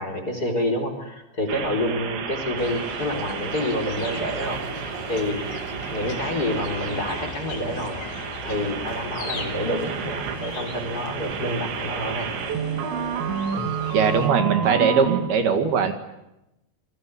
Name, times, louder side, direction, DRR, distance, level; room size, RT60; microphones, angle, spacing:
voice 1, 0.0-4.6 5.1-5.5 5.9-8.0 8.4-12.3, left 1 dB, 20° left, 7 dB, 4.2 m, -28 dB
It's Also On AM, 1.5-15.2, right 7 dB, 80° right, 4.8 m, -31 dB
sound 1, 2.6-14.3, left 4 dB, 65° left, 5.5 m, -39 dB
sound 2, 3.9-12.6, right 5 dB, 45° right, 2.3 m, -41 dB
voice 2, 13.9-15.9, right 6 dB, 65° right, 7 dB, 3.6 m, -20 dB
29.0 x 22.0 x 8.4 m, 0.91 s
omnidirectional pair, 5.1 m